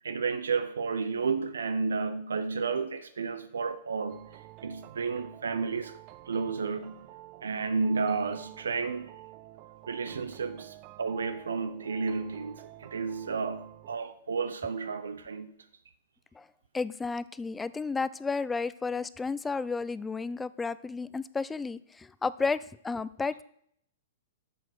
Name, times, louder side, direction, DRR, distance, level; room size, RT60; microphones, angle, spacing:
voice 1, 0.0-6.0 6.3-7.0 7.4-9.1 9.9-15.5, right 5 dB, 85° right, 0.6 m, -32 dB
sound 1, 4.1-14.0, right 14 dB, 40° right, 0.6 m, -50 dB
voice 2, 16.7-23.4, left 4 dB, 10° left, 0.4 m, -32 dB
8.7 x 6.2 x 6.4 m
hypercardioid pair, 120°, 0 cm